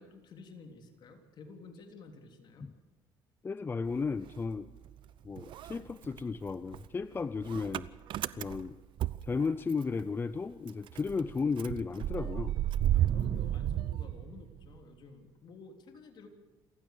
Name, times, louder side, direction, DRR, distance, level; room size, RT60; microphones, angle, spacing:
voice 1, 0.0-2.7 12.9-16.3, left 4 dB, 55° left, 4 dB, 3.6 m, -51 dB
voice 2, 3.4-4.7 5.2-7.9 8.4-8.8 9.2-12.6, left 4 dB, 25° left, 13 dB, 0.6 m, -34 dB
Motor vehicle (road) / Engine starting, 3.8-5.1 5.4-10.0 10.3-10.4 10.7-14.8, right 12 dB, 65° right, 0.7 m, -33 dB
28.0 x 15.5 x 6.8 m, 1.3 s
cardioid pair, 120°, 9 cm